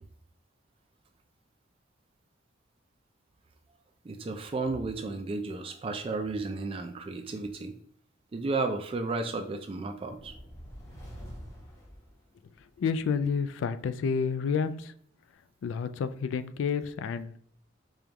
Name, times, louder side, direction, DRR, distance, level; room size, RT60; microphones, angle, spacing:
voice 1, 4.0-7.7 8.3-10.4, right 3 dB, 30° right, 6 dB, 0.3 m, -33 dB
sound 1, 10.1-12.8, equal, 15° left, 0.9 m, -46 dB
voice 2, 12.8-14.9 15.6-17.3, left 6 dB, 85° left, 12 dB, 0.3 m, -29 dB
5.0 x 2.3 x 2.9 m, 0.65 s
head